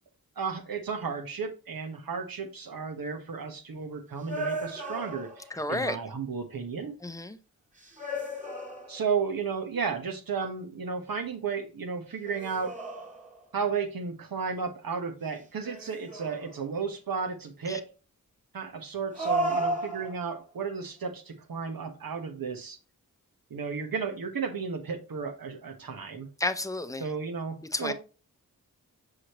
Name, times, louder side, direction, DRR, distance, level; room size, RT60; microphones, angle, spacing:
voice 1, 0.4-5.4 5.7-7.0 8.9-12.7 13.5-17.8 18.5-22.8 23.5-26.3 27.0-27.9, right 5 dB, 80° right, 1.2 m, -33 dB
sound 1, 4.3-5.6 7.8-9.2 12.2-13.5 15.6-16.7 19.1-20.5, right 1 dB, 20° right, 1.7 m, -34 dB
voice 2, 5.5-6.0 7.0-7.4 17.7-17.8 26.4-27.1 27.7-27.9, left 2 dB, 10° left, 0.7 m, -31 dB
6.3 x 4.9 x 3.0 m
cardioid pair, 60°, 35 cm